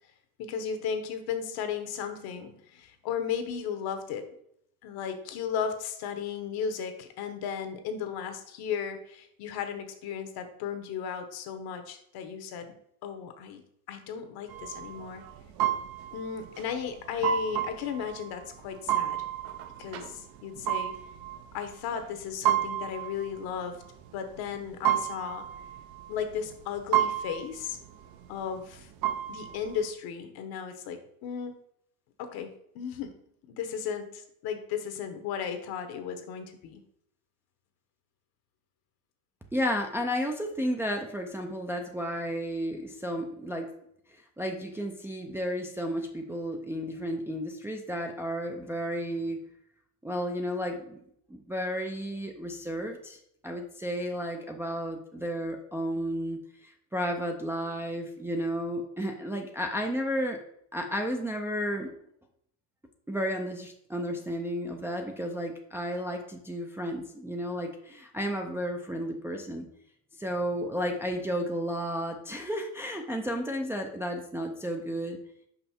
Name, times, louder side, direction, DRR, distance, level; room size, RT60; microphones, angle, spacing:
voice 1, 0.4-4.3 4.8-12.7 13.0-13.6 13.9-15.2 16.1-19.2 19.8-20.9 21.5-23.8 24.1-25.5 26.1-27.8 28.3-28.9 29.3-31.6 32.2-32.5 32.7-33.1 33.5-36.8, left 7 dB, 60° left, 8 dB, 1.2 m, -35 dB
sound 1, 14.5-29.9, right 11 dB, 55° right, 0.8 m, -32 dB
voice 2, 39.5-43.7 44.4-49.4 50.0-51.0 51.3-53.2 53.4-60.4 60.7-61.9 63.1-69.7 70.2-75.2, equal, 5° right, 1 dB, 0.5 m, -32 dB
5.5 x 5.4 x 4.3 m, 0.71 s
cardioid pair, 130°, 42 cm